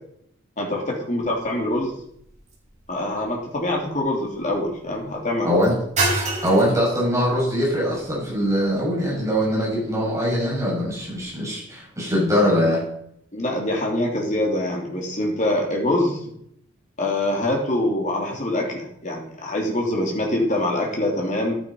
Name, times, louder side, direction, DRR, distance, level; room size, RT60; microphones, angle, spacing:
voice 1, 0.6-1.9 2.9-5.6 13.3-16.3 17.0-21.6, left 1 dB, 35° left, -1 dB, 3.2 m, -24 dB
sound 1, 1.2-11.3, right 2 dB, 35° right, 4.7 m, -33 dB
voice 2, 6.4-12.8, equal, 15° right, -6 dB, 6.1 m, -22 dB
11.5 x 8.7 x 5.5 m, 0.71 s
head